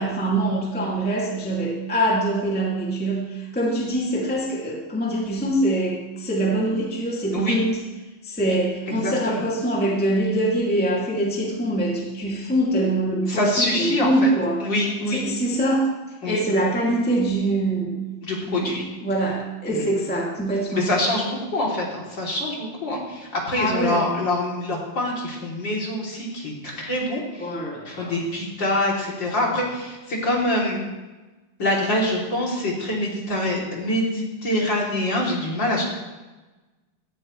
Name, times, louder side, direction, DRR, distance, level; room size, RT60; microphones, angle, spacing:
voice 1, 0.0-7.8 8.2-14.6 15.1-15.9 16.2-18.0 18.5-20.9 23.5-24.0 27.4-28.1, right 1 dB, 5° left, -3 dB, 1.1 m, -24 dB
voice 2, 8.9-9.4 13.3-14.3 14.6-15.2 16.2-16.4 18.2-18.8 19.7-19.9 20.7-27.5 27.8-30.8 31.6-35.8, left 1 dB, 30° left, -3 dB, 3.3 m, -25 dB
17.5 x 13.5 x 3.2 m, 1.2 s
omnidirectional pair, 4.5 m